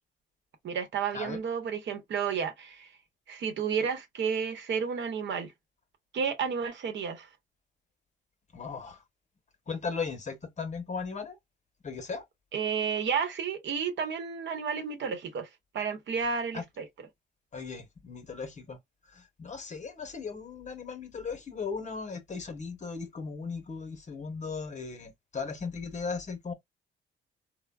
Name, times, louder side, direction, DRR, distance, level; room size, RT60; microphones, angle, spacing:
voice 1, 0.6-2.9 3.3-5.5 6.1-7.3 12.5-15.5 15.7-16.9, right 6 dB, 65° right, 0.9 m, -31 dB
voice 2, 8.5-9.0 9.7-11.4 11.8-12.2 16.5-16.6 17.5-18.8 19.4-26.5, left 5 dB, 35° left, 0.9 m, -37 dB
3.3 x 2.1 x 2.2 m
cardioid pair, 90°, 20 cm